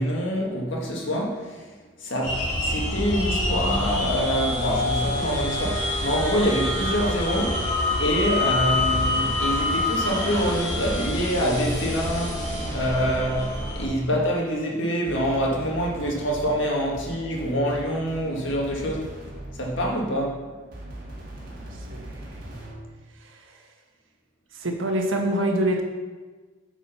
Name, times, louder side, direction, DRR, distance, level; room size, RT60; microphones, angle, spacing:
voice 1, 0.0-1.7 2.0-7.7 8.0-19.1 19.5-20.5, equal, 65° left, -1 dB, 1.7 m, -26 dB
sound 1, 2.2-13.9, left 2 dB, 35° left, 2.4 m, -26 dB
sound 2, 10.9-14.2 15.1-20.2 20.7-22.9, right 1 dB, 45° right, 1.9 m, -40 dB
voice 2, 21.4-22.4 23.2-23.6 24.5-25.8, right 1 dB, 75° right, 3 dB, 1.2 m, -27 dB
8.6 x 4.9 x 5.7 m, 1.4 s
head